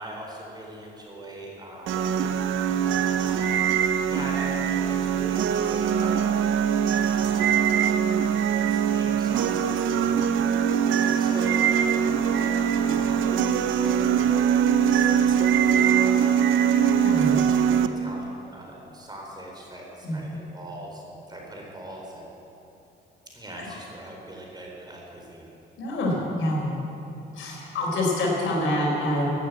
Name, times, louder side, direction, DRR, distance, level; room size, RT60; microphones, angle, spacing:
voice 1, 0.0-2.2 3.2-3.8 4.1-6.8 7.2-7.6 8.5-10.4 11.1-22.3 23.3-25.5, right 1 dB, 20° right, -2 dB, 4.3 m, -41 dB
sound 1, 1.9-17.9, right 8 dB, 80° right, 0.8 m, -22 dB
voice 2, 25.8-26.7 27.3-29.3, left 1 dB, 80° left, -2 dB, 4.3 m, -26 dB
16.0 x 9.2 x 8.2 m, 2.8 s
cardioid pair, 90°, 20 cm